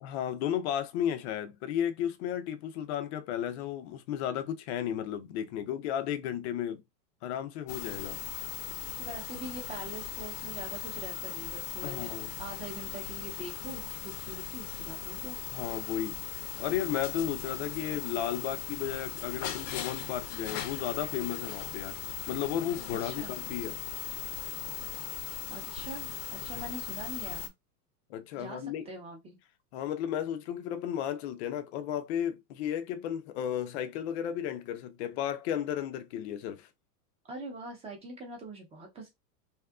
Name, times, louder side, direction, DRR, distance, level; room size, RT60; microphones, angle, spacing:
voice 1, 0.0-6.8 7.2-8.2 11.8-12.3 15.5-16.2 16.6-22.0 22.3-23.8 26.5-26.6 28.1-28.9 29.7-36.7, left 10 dB, 45° left, 0.5 m, -34 dB
sound 1, 7.7-27.5, left 10 dB, 85° left, 0.7 m, -39 dB
voice 2, 9.0-12.1 12.4-15.4 23.0-23.3 25.5-27.5 28.4-29.4 37.3-39.1, right 2 dB, 15° right, 0.7 m, -43 dB
2.7 x 2.4 x 2.3 m
supercardioid pair, 140°, 46 cm